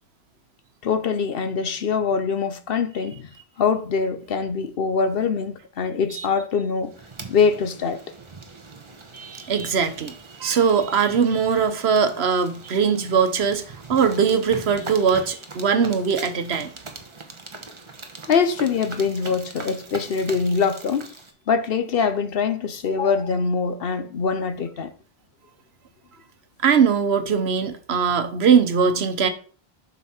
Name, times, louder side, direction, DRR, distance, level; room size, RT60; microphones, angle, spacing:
voice 1, 0.8-3.3 3.6-6.9 7.3-8.0 18.3-21.1 21.5-24.9, left 5 dB, 65° left, 1.0 m, -23 dB
sound 1, 6.9-21.3, right 3 dB, 30° right, 1.0 m, -41 dB
voice 2, 9.5-10.1 10.4-13.6 13.9-16.7 26.6-29.3, right 6 dB, 75° right, 1.2 m, -20 dB
7.9 x 5.7 x 4.3 m
omnidirectional pair, 1.1 m